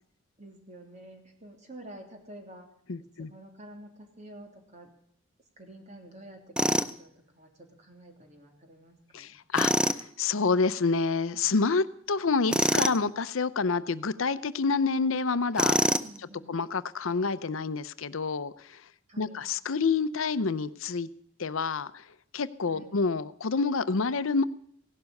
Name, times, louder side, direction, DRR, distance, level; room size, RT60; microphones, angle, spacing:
voice 1, 0.4-2.6 3.2-4.9 5.6-9.3 16.0-16.5 19.1-19.5 22.7-23.0, right 1 dB, 35° right, 3 dB, 3.2 m, -49 dB
voice 2, 2.9-3.3 9.1-15.9 16.5-18.8 19.2-21.1 21.4-22.0 22.3-24.4, left 4 dB, 70° left, 14 dB, 0.7 m, -28 dB
Tools, 6.6-6.9 9.5-10.0 12.5-13.0 15.6-16.2, right 1 dB, 5° right, 0.5 m, -24 dB
17.0 x 12.0 x 6.5 m, 0.69 s
head